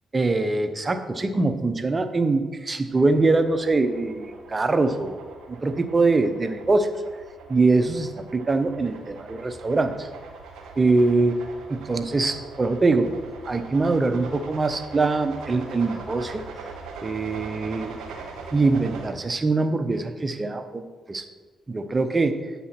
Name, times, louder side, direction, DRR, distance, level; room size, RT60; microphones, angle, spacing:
voice 1, 0.1-5.2 5.5-6.9 7.5-10.1 10.8-11.4 11.7-13.1 13.4-16.4 17.0-18.0 18.5-21.2 21.7-22.4, right 3 dB, 35° right, 9 dB, 0.7 m, -23 dB
sound 1, 2.9-19.1, right 4 dB, 80° right, 1.0 m, -42 dB
8.6 x 5.7 x 4.2 m, 1.4 s
supercardioid pair, 55°, 0 cm